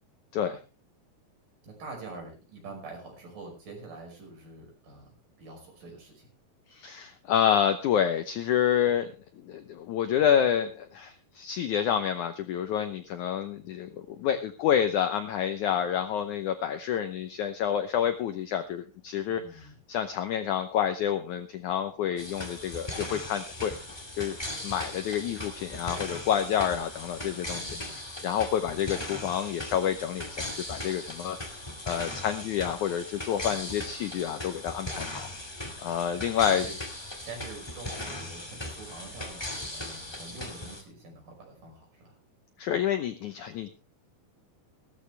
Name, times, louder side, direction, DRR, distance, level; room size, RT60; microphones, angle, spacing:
voice 1, 1.6-6.3 19.3-19.8 27.5-28.1 36.1-36.7 37.2-39.4 39.7-42.2, right 3 dB, 60° right, 1 dB, 7.1 m, -45 dB
voice 2, 6.7-9.1 9.4-23.8 24.2-24.4 24.6-31.4 31.9-35.3 35.8-36.7 42.6-43.7, left 9 dB, 75° left, 8 dB, 1.8 m, -28 dB
sound 1, 22.2-40.8, left 1 dB, 15° left, 1.0 m, -38 dB
16.5 x 13.0 x 3.3 m, 0.32 s
omnidirectional pair, 4.5 m